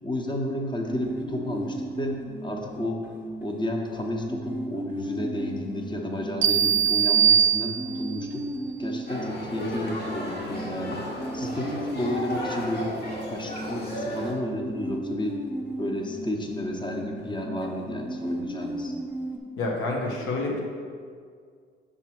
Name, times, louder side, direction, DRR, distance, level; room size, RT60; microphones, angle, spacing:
voice 1, 0.0-3.1 3.4-8.5 8.8-11.0 11.3-12.9 13.3-15.4 15.8-19.0, left 1 dB, 25° left, 1 dB, 1.0 m, -32 dB
sound 1, 0.9-19.4, right 1 dB, 10° right, 0.9 m, -36 dB
sound 2, 6.4-8.2, right 8 dB, 40° right, 0.6 m, -21 dB
sound 3, 9.1-14.3, left 1 dB, 55° left, 1.4 m, -34 dB
voice 2, 19.6-20.6, left 2 dB, 85° left, -1 dB, 0.9 m, -28 dB
5.9 x 3.6 x 5.9 m, 2.1 s
cardioid pair, 90°, 20 cm